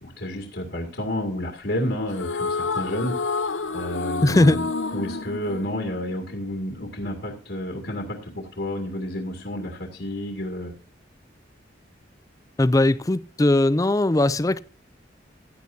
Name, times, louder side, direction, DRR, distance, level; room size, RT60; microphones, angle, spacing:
voice 1, 0.0-3.1 3.7-4.7 4.9-10.7, left 1 dB, 65° left, 2.3 m, -30 dB
sound 1, 2.1-6.5, left 4 dB, 90° left, 0.8 m, -29 dB
voice 2, 4.2-4.6 12.6-14.6, left 1 dB, 20° left, 0.4 m, -19 dB
15.5 x 10.5 x 2.7 m
head